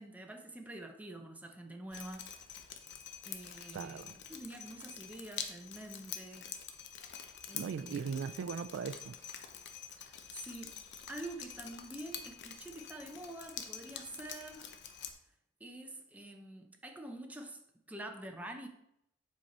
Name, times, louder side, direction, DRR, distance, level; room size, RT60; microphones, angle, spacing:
voice 1, 0.0-2.2 3.2-6.5 7.5-8.0 10.0-10.8 11.1-14.7 15.6-17.6 17.9-18.7, right 1 dB, 10° right, 0.7 m, -47 dB
Drip, 1.9-15.1, left 8 dB, 60° left, 0.7 m, -47 dB
voice 2, 3.7-4.2 7.5-9.2, right 6 dB, 65° right, 0.3 m, -39 dB
7.6 x 4.6 x 4.2 m
head